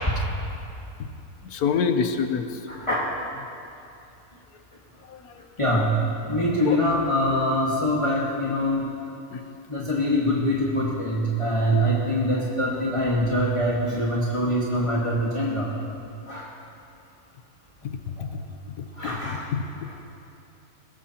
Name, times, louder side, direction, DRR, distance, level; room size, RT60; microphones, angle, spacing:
voice 1, 1.5-2.5 5.1-5.2 6.6-6.8 9.3-9.4 11.7-11.9 18.2-18.3 18.8-18.9 19.2-19.9, left 6 dB, 85° left, 7 dB, 1.3 m, -26 dB
voice 2, 2.7-3.1 5.6-6.0 6.3-8.8 9.7-15.7 16.3-16.5 19.0-19.5, equal, 20° left, -5 dB, 1.6 m, -24 dB
21.5 x 17.5 x 2.9 m, 2.7 s
omnidirectional pair, 1.5 m